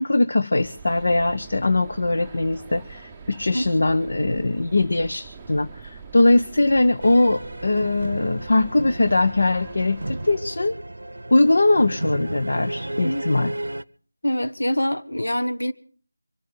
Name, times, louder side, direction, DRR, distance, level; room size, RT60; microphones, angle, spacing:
voice 1, 0.0-10.8 11.3-13.5, left 2 dB, 55° left, 1.0 m, -21 dB
sound 1, 0.6-10.4, right 5 dB, 10° right, 0.8 m, -43 dB
sound 2, 7.0-13.8, right 1 dB, 80° right, 0.7 m, -33 dB
voice 2, 14.2-15.7, equal, 80° left, 1.6 m, -24 dB
24.5 x 8.7 x 6.9 m
figure-of-eight pair, 170°, 0 cm